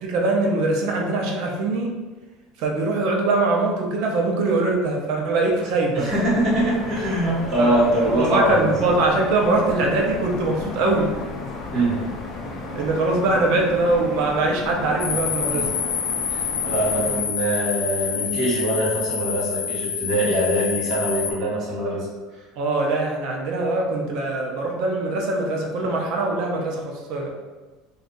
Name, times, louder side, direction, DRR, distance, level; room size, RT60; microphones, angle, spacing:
voice 1, 0.0-1.9 2.6-6.1 7.6-11.1 12.7-15.7 22.6-27.3, right 2 dB, 60° right, 0 dB, 0.6 m, -22 dB
voice 2, 5.9-8.7 11.7-12.0 15.5-15.6 16.3-22.1, right 1 dB, 35° right, -7 dB, 1.2 m, -23 dB
sound 1, 6.1-17.2, left 3 dB, 35° left, 0.5 m, -34 dB
sound 2, 15.0-21.3, left 7 dB, 90° left, 0.4 m, -27 dB
2.6 x 2.3 x 3.8 m, 1.2 s
cardioid pair, 160°, 0 cm